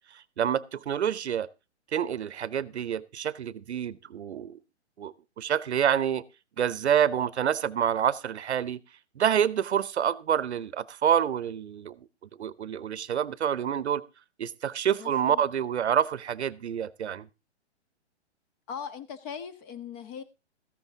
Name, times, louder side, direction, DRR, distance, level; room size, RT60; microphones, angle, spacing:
voice 1, 0.1-1.5 1.9-4.6 5.0-6.2 6.6-8.8 9.2-12.1 12.4-14.0 14.4-17.3, right 9 dB, 75° right, 0.8 m, -27 dB
voice 2, 15.0-15.4 18.7-20.2, left 7 dB, 30° left, 1.3 m, -39 dB
14.0 x 10.5 x 3.7 m
hypercardioid pair, 130°, 34 cm